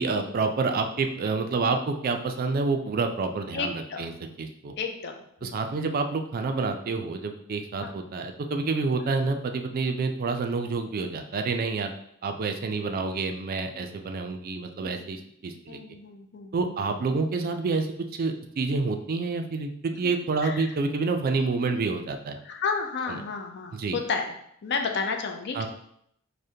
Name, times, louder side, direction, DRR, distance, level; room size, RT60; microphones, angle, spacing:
voice 1, 0.0-4.1 4.4-4.7 5.4-11.9 12.2-15.8 16.5-22.4 23.1-23.2 23.7-24.0 25.5-25.7, right 4 dB, 45° right, 5 dB, 0.3 m, -28 dB
voice 2, 3.5-4.1 4.8-5.6 7.8-7.9 13.7-13.9 14.8-14.9 15.7-16.5 16.9-17.0 20.4-20.7 22.4-24.3 24.6-25.7, left 5 dB, 55° left, 4 dB, 0.5 m, -32 dB
4.9 x 2.1 x 2.7 m, 0.71 s
head